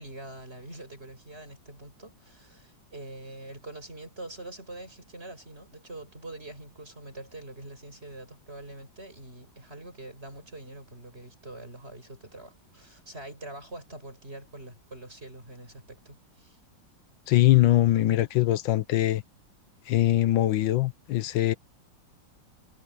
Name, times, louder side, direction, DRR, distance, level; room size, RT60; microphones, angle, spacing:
voice 1, 0.0-16.6, right 2 dB, 30° right, 7.4 m, -44 dB
voice 2, 17.3-19.2 19.9-21.5, left 14 dB, 90° left, 1.5 m, -22 dB
omnidirectional pair, 2.0 m